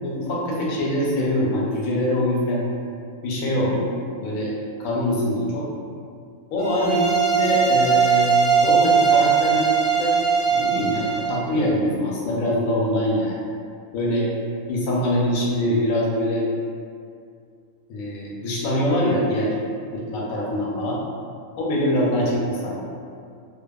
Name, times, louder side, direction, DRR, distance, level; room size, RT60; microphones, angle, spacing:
voice 1, 0.0-2.6 3.2-3.9 4.2-4.5 4.8-5.7 6.5-7.0 7.3-8.3 8.6-9.6 10.0-10.2 10.5-13.4 13.9-14.3 14.7-16.5 17.9-19.5 19.9-21.0 21.6-22.8, left 1 dB, 85° left, -4 dB, 1.0 m, -23 dB
sound 1, 6.6-11.4, right 6 dB, 40° left, 0.5 m, -20 dB
2.7 x 2.1 x 2.2 m, 2.3 s
omnidirectional pair, 1.4 m